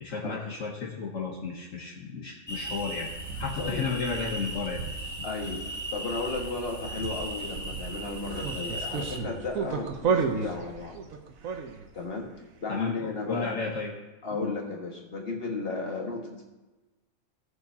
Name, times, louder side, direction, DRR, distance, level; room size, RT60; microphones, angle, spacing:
voice 1, 0.0-3.1 3.4-4.8 12.7-13.9 14.3-14.5, left 5 dB, 70° left, -2 dB, 1.5 m, -33 dB
sound 1, 2.5-9.2, right 1 dB, 15° left, 1.2 m, -37 dB
sound 2, 3.0-12.0, right 5 dB, 85° right, 1.3 m, -34 dB
voice 2, 5.2-11.0 11.9-12.3 12.6-13.5 14.2-16.4, left 3 dB, 45° left, -1 dB, 1.9 m, -34 dB
17.5 x 6.7 x 2.9 m, 1.1 s
omnidirectional pair, 1.4 m